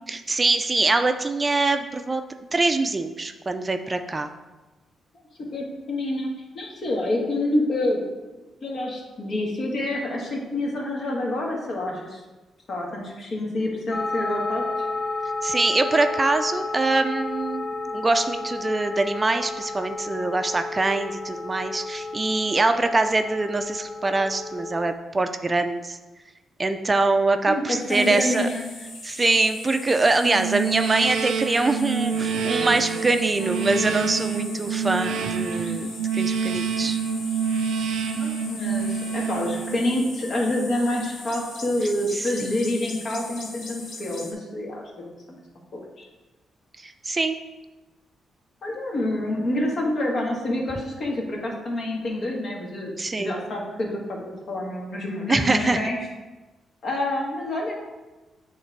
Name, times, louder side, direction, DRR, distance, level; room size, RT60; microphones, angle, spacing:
voice 1, 0.1-2.2 2.5-4.3 15.4-26.0 26.6-28.5 29.0-35.9 36.1-37.0 42.1-42.3 46.8-47.4 53.0-53.3 55.3-55.8, right 3 dB, 25° right, 8 dB, 0.4 m, -23 dB
voice 2, 5.4-8.0 8.6-12.2 12.7-14.6 27.5-28.6 38.2-45.1 45.7-46.1 48.6-52.9 53.2-54.2 54.5-56.0 56.8-57.7, left 1 dB, 55° left, -1 dB, 1.7 m, -27 dB
sound 1, 13.9-24.9, left 3 dB, 40° left, 0.5 m, -32 dB
sound 2, 27.9-44.3, left 3 dB, 75° left, 1.3 m, -40 dB
sound 3, 30.3-40.2, right 6 dB, 85° right, 0.5 m, -27 dB
8.5 x 3.3 x 4.6 m, 1.2 s
cardioid pair, 90°, 0 cm